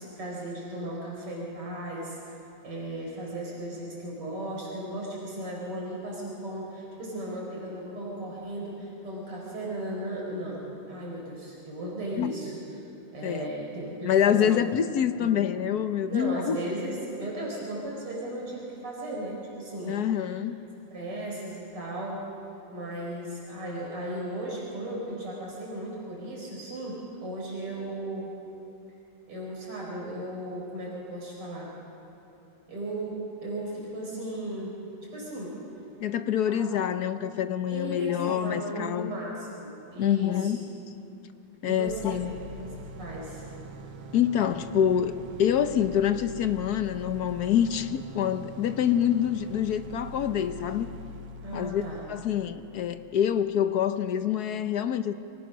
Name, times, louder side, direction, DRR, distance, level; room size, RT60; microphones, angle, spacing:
voice 1, 0.0-2.4 2.6-12.5 13.1-14.5 15.2-15.3 16.1-20.4 20.9-22.2 22.7-28.3 29.3-31.7 32.7-34.8 35.1-35.6 36.5-36.7 37.7-40.5 41.6-42.2 42.6-43.4 51.4-52.0, right 1 dB, 85° right, -3 dB, 5.6 m, -36 dB
voice 2, 14.0-16.6 19.9-20.6 36.0-39.1 40.0-40.6 41.6-42.3 44.1-50.9 51.5-51.8 52.1-55.1, left 9 dB, 60° left, 10 dB, 1.1 m, -26 dB
sound 1, 41.9-53.7, equal, 65° right, 2.0 m, -43 dB
28.0 x 24.5 x 6.2 m, 2.8 s
omnidirectional pair, 2.4 m